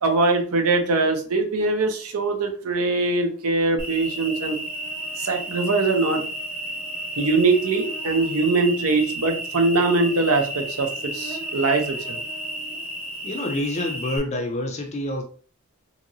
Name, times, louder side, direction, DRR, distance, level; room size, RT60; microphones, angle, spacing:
voice 1, 0.0-4.6 5.2-6.2 7.2-12.2, right 3 dB, 85° right, 0.6 m, -22 dB
Cricket, 3.8-14.2, right 1 dB, 5° right, 0.8 m, -32 dB
voice 2, 13.2-15.2, left 1 dB, 30° left, 0.4 m, -27 dB
2.9 x 2.8 x 2.6 m
head